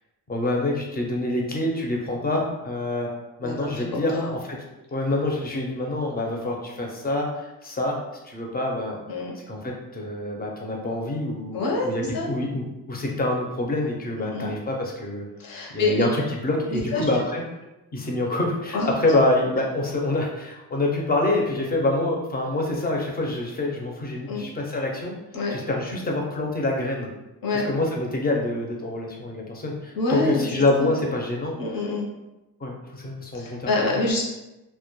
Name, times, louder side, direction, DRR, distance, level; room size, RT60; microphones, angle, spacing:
voice 1, 0.3-3.1 3.4-4.4 4.9-9.0 9.5-11.6 11.8-15.3 15.7-17.4 17.9-25.1 25.5-27.1 27.5-31.6 32.6-33.7, left 2 dB, 25° left, 0 dB, 0.5 m, -26 dB
voice 2, 3.4-4.3 9.1-9.3 11.5-12.3 14.2-14.6 15.4-16.0 16.7-17.2 18.7-19.0 24.3-24.4 25.3-25.5 27.4-27.7 29.9-30.5 30.8-31.0 31.6-32.1 33.3-34.2, left 2 dB, 65° left, -2 dB, 0.7 m, -26 dB
2.2 x 2.1 x 2.9 m, 0.99 s
cardioid pair, 105°, 38 cm